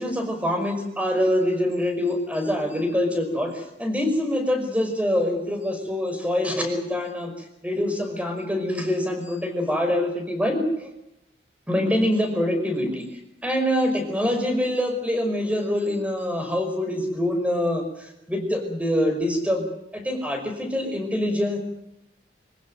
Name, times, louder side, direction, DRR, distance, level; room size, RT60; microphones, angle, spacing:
voice 1, 0.0-10.9 11.7-19.7 19.9-21.6, left 1 dB, 10° right, 5 dB, 5.4 m, -25 dB
26.0 x 16.0 x 9.3 m, 0.85 s
head